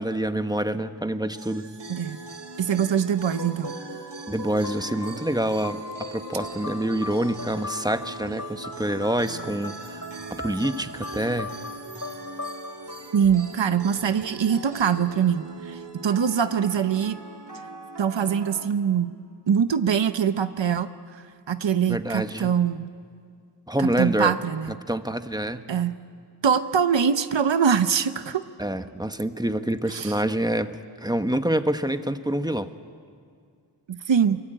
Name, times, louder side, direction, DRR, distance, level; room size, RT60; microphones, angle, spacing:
voice 1, 0.0-1.7 4.3-11.5 21.9-22.6 23.7-24.3 24.9-25.7 28.6-32.7, right 1 dB, 10° right, 9 dB, 1.1 m, -27 dB
sound 1, 1.3-18.7, right 4 dB, 70° right, 2.8 m, -41 dB
voice 2, 2.6-3.8 13.1-17.2 18.0-19.1 19.5-22.9 23.8-24.7 25.7-26.0 26.4-28.4 29.9-30.1 33.9-34.4, right 7 dB, 90° right, 10 dB, 0.9 m, -23 dB
sound 2, 3.3-13.9, left 3 dB, 45° left, 2.1 m, -39 dB
27.5 x 24.0 x 8.9 m, 2.2 s
wide cardioid pair, 75°, 43 cm